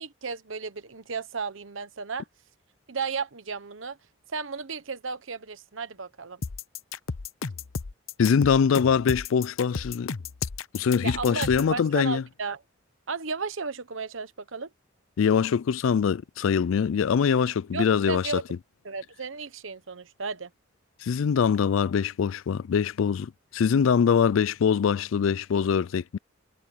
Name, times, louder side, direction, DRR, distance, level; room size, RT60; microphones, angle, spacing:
voice 1, 0.0-2.2 2.9-4.0 4.3-6.4 11.0-12.6 13.1-14.7 17.7-18.4 18.8-20.5, right 5 dB, 70° right, 1.1 m, -34 dB
sound 1, 6.4-11.7, left 4 dB, 90° left, 0.8 m, -33 dB
voice 2, 8.2-10.1 10.7-12.2 15.2-18.3 21.0-26.2, left 6 dB, 70° left, 0.4 m, -23 dB
head